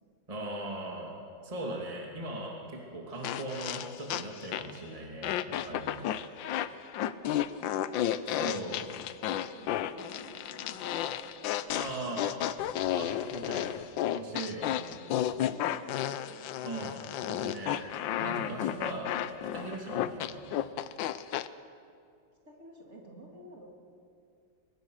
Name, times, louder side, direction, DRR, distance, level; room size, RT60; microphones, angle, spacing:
voice 1, 0.3-1.2 1.4-6.1 8.3-8.8 11.8-12.3 13.0-13.7 14.1-14.7 16.6-17.9 18.2-19.1 19.5-20.7, right 1 dB, 20° right, -1 dB, 2.5 m, -39 dB
sound 1, 3.2-4.8 5.2-21.5, left 11 dB, 85° left, 1.4 m, -32 dB
voice 2, 7.0-8.0 8.7-9.0 9.5-12.9 14.6-15.0 15.3-16.6 22.4-23.7, right 1 dB, 40° right, -1 dB, 3.2 m, -51 dB
23.5 x 20.5 x 6.4 m, 2.4 s
omnidirectional pair, 2.0 m